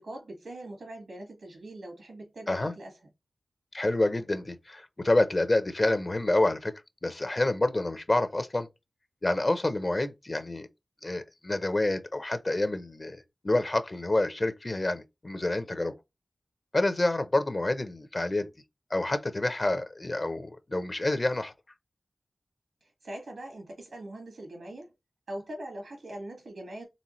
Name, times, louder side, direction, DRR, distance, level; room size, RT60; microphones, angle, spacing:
voice 1, 0.0-2.9 23.0-24.9 25.3-26.8, right 1 dB, 90° right, 1.8 m, -41 dB
voice 2, 3.7-6.7 7.0-8.7 9.2-10.7 11.0-15.9 16.7-18.5 18.9-21.5, left 2 dB, 40° left, 0.7 m, -28 dB
4.1 x 3.5 x 3.1 m
wide cardioid pair, 65°, 0 cm